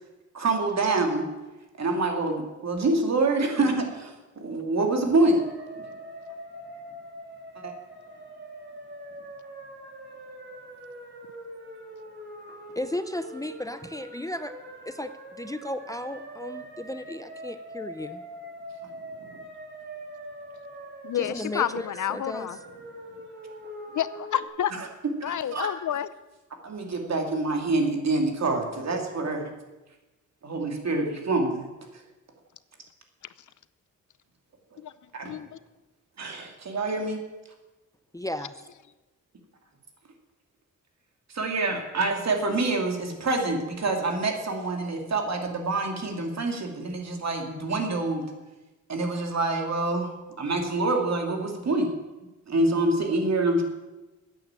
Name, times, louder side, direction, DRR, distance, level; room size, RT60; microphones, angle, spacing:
voice 1, 0.3-1.3 1.8-5.4 7.6-7.7 19.2-19.3 24.8-24.9 25.2-25.7 26.6-29.4 30.4-31.7 34.7-34.8 35.1-35.3 36.2-37.2 41.3-48.2 48.9-50.1 50.4-51.9 52.5-53.6, right 2 dB, 60° right, 3 dB, 2.7 m, -26 dB
sound 1, 5.2-24.4, equal, 35° right, 3.0 m, -43 dB
voice 2, 12.7-14.5 14.9-15.1 15.4-18.2 21.1-22.5 38.1-38.6, left 1 dB, 10° left, 10 dB, 0.6 m, -34 dB
voice 3, 21.0-22.6 23.9-24.7 25.2-26.1 34.8-34.9 35.2-35.6, left 10 dB, 70° left, 15 dB, 0.7 m, -29 dB
13.5 x 9.0 x 8.9 m, 1.1 s
wide cardioid pair, 115°, 31 cm